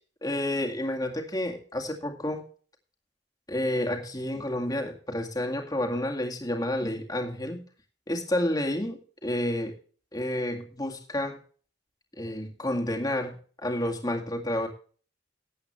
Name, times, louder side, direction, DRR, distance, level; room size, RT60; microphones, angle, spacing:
voice 1, 0.2-2.4 3.5-7.6 8.1-9.7 10.1-11.4 12.2-13.3 13.6-14.7, left 1 dB, 20° left, 2 dB, 2.1 m, -30 dB
18.0 x 8.5 x 3.3 m, 0.42 s
head